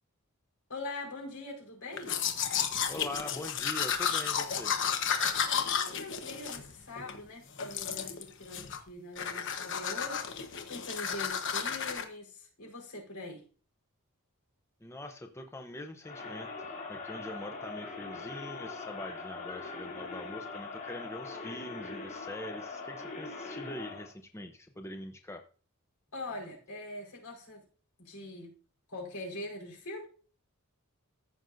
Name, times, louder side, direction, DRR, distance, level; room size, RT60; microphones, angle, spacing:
voice 1, 0.7-2.2 5.5-13.4 26.1-27.6 28.0-28.5 28.9-30.1, left 2 dB, 75° left, -1 dB, 4.5 m, -43 dB
Domestic sounds home sounds, 2.0-7.2 7.6-8.2 8.5-8.9 9.2-12.0, left 7 dB, 55° left, 1.1 m, -32 dB
voice 2, 2.9-4.8 14.8-25.4, left 1 dB, 10° left, 5 dB, 0.6 m, -43 dB
Crowd, 16.0-24.1, left 3 dB, 35° left, 2.7 m, -42 dB
14.5 x 6.3 x 2.6 m, 0.39 s
head